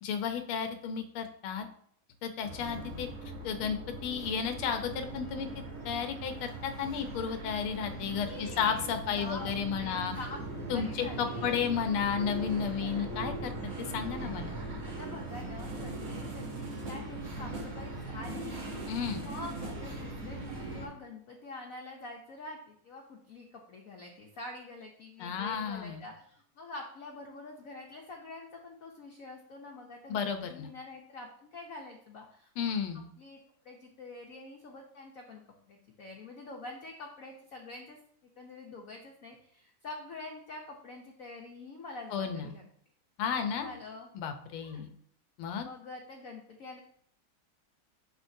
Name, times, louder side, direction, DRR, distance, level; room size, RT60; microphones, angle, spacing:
voice 1, 0.0-1.7 2.2-3.1 3.4-5.5 5.8-10.1 10.7-13.5 13.9-14.6 18.9-19.2 25.2-26.0 30.1-30.7 32.6-33.1 42.1-42.5 43.2-43.8 44.1-44.9 45.4-45.7, left 7 dB, 85° left, 7 dB, 1.7 m, -33 dB
sound 1, 2.4-20.9, right 2 dB, 75° right, 3.1 m, -40 dB
voice 2, 8.2-11.5 12.8-13.1 14.8-32.8 33.2-33.4 33.6-38.0 38.4-42.6 43.3-44.1 44.6-44.9 45.6-46.8, left 2 dB, 60° left, 1 dB, 0.9 m, -46 dB
sound 2, 15.5-17.3 17.5-17.9 18.2-20.0, right 2 dB, 45° right, 0.9 m, -44 dB
8.9 x 6.4 x 2.7 m, 0.65 s
omnidirectional pair, 2.3 m